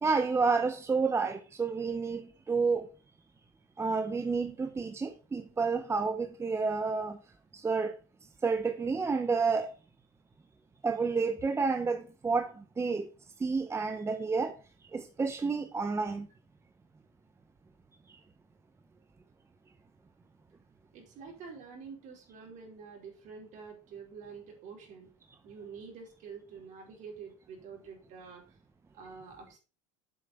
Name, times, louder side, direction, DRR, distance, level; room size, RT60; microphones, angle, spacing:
voice 1, 0.0-2.9 3.8-7.2 7.5-8.0 8.4-9.7 10.8-13.1 13.4-14.5 14.9-16.3, right 4 dB, 15° right, 0.9 m, -30 dB
voice 2, 20.9-25.1 25.4-28.4 28.9-29.6, right 5 dB, 55° right, 4.4 m, -47 dB
7.9 x 6.4 x 5.3 m
supercardioid pair, 100°, 15 cm